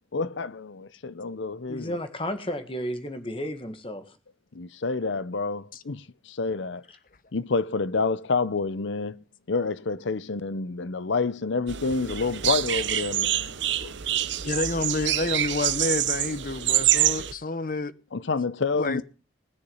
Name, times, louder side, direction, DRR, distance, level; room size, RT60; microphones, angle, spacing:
voice 1, 0.1-2.0 4.5-6.8 7.3-13.9 18.1-19.0, left 4 dB, 75° left, 0.7 m, -28 dB
voice 2, 1.7-4.2 6.9-7.0, equal, 30° left, 1.7 m, -33 dB
sound 1, 11.7-17.3, right 12 dB, 70° right, 0.8 m, -26 dB
voice 3, 14.4-17.9 18.7-19.0, left 3 dB, 45° left, 0.9 m, -29 dB
20.0 x 7.0 x 5.5 m
head